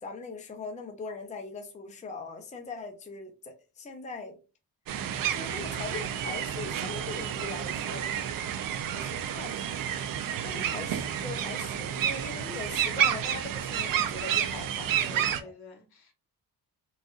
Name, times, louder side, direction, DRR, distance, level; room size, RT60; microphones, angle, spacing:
voice 1, 0.0-4.4 5.3-8.0 8.9-9.7 10.4-15.5, left 3 dB, 20° left, 0.6 m, -41 dB
sound 1, 4.9-15.4, right 9 dB, 60° right, 0.5 m, -30 dB
voice 2, 14.9-16.1, left 3 dB, 75° left, 1.4 m, -48 dB
4.0 x 2.4 x 2.4 m
cardioid pair, 110°, 38 cm